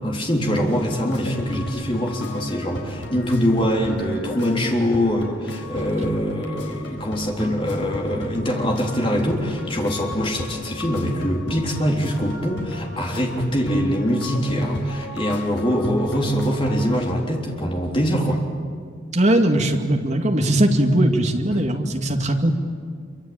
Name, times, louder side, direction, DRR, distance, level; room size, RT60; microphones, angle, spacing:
voice 1, 0.0-18.4, equal, 25° left, 0 dB, 3.7 m, -23 dB
sound 1, 0.7-17.1, left 1 dB, 70° left, 4.4 m, -35 dB
voice 2, 19.1-22.5, right 1 dB, 35° right, 3 dB, 2.2 m, -19 dB
26.5 x 24.5 x 8.9 m, 2.1 s
head